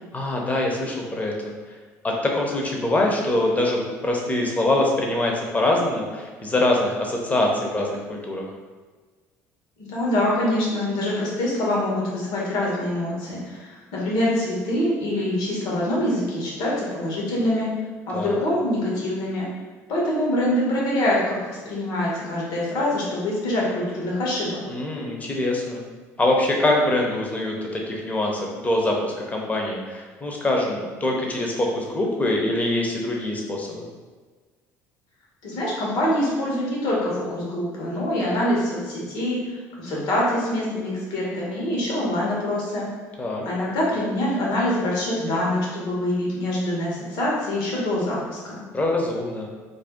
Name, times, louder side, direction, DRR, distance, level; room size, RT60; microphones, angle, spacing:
voice 1, 0.1-1.5 2.0-8.4 18.1-18.4 24.7-25.8 26.2-33.9 43.2-43.4 48.7-49.5, left 1 dB, 20° left, 0 dB, 0.7 m, -24 dB
voice 2, 9.8-17.7 18.1-19.5 19.9-24.6 35.4-42.9 43.4-48.6, left 1 dB, 70° left, -5 dB, 1.1 m, -25 dB
2.6 x 2.2 x 3.5 m, 1.4 s
supercardioid pair, 80°, 7 cm